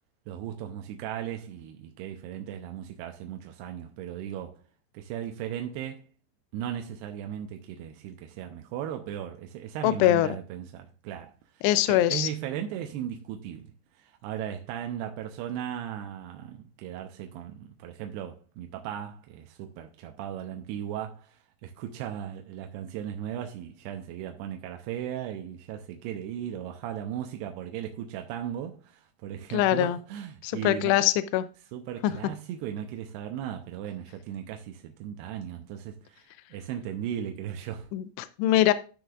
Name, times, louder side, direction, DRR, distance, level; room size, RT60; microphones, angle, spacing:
voice 1, 0.3-4.6 4.9-6.0 6.5-13.7 14.0-31.0 31.7-37.9, right 10 dB, 80° right, 2.7 m, -37 dB
voice 2, 9.8-10.3 11.6-12.3 29.5-30.0 30.4-31.5 37.9-38.7, left 13 dB, 85° left, 2.6 m, -23 dB
12.0 x 6.4 x 2.4 m
omnidirectional pair, 4.9 m